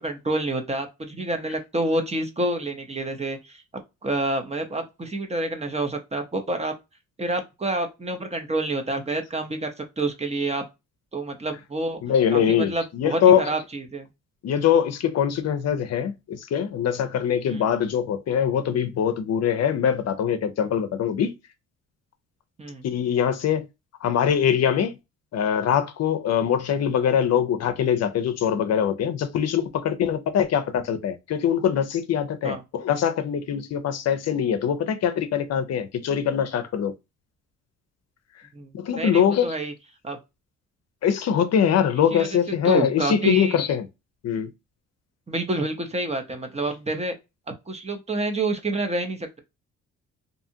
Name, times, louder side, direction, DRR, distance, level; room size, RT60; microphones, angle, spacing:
voice 1, 0.0-3.6 4.0-6.7 7.2-10.6 11.1-12.0 12.3-13.2 13.5-14.1 17.5-17.7 22.6-22.8 32.4-32.6 38.5-38.7 39.0-39.7 40.0-40.2 42.1-42.4 42.6-43.6 45.3-47.1 47.7-49.4, right 2 dB, 20° right, 0.7 m, -28 dB
voice 2, 12.0-13.5 14.4-21.3 22.8-23.7 24.0-25.0 25.3-36.9 38.7-39.5 41.0-43.8 44.2-44.5, left 8 dB, 60° left, 0.6 m, -23 dB
2.7 x 2.4 x 2.6 m
cardioid pair, 90°, 30 cm